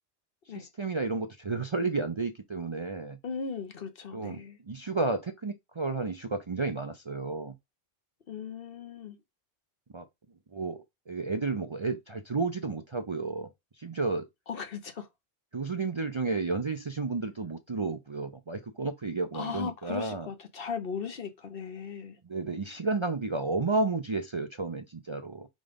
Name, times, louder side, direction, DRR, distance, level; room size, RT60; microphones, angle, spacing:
voice 1, 0.5-3.2 4.1-4.4 4.7-7.5 9.9-10.0 10.5-13.5 13.8-14.3 15.5-20.3 22.2-25.5, right 3 dB, 35° right, 0.5 m, -32 dB
voice 2, 3.2-4.6 8.3-9.2 14.5-15.1 19.3-22.2, left 6 dB, 60° left, 1.1 m, -37 dB
5.0 x 3.9 x 5.1 m
omnidirectional pair, 1.1 m